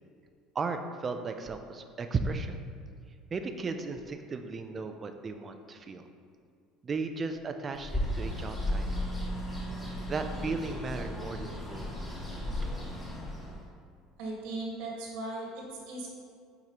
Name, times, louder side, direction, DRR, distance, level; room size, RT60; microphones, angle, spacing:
voice 1, 0.6-2.6 3.3-6.0 6.8-9.1 10.1-11.9, right 4 dB, 20° right, 7 dB, 0.3 m, -35 dB
Bird, 7.7-13.6, left 1 dB, 10° left, 1.6 m, -35 dB
voice 2, 14.2-16.1, right 2 dB, 75° right, -2 dB, 1.5 m, -38 dB
8.9 x 4.6 x 2.9 m, 2.2 s
cardioid pair, 170°, 0 cm